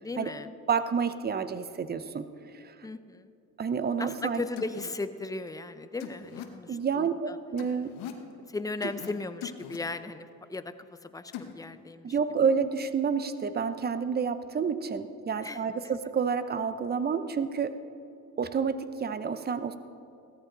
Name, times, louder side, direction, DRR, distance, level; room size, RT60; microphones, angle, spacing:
voice 1, 0.0-0.5 2.8-3.3 4.0-7.4 8.5-10.7 11.0-12.1 15.4-15.9, left 3 dB, 10° left, 11 dB, 0.6 m, -37 dB
voice 2, 0.7-2.3 2.5-2.7 3.6-4.4 6.7-7.9 12.0-17.7 18.4-19.8, right 6 dB, 25° right, 12 dB, 0.7 m, -29 dB
sound 1, 4.2-4.3 4.6-4.9 6.0-6.5 7.6-8.2 8.8-9.1 9.4-9.8 11.3-11.5, left 10 dB, 85° left, 1.2 m, -40 dB
17.0 x 13.5 x 4.0 m, 2.6 s
cardioid pair, 105°, 35 cm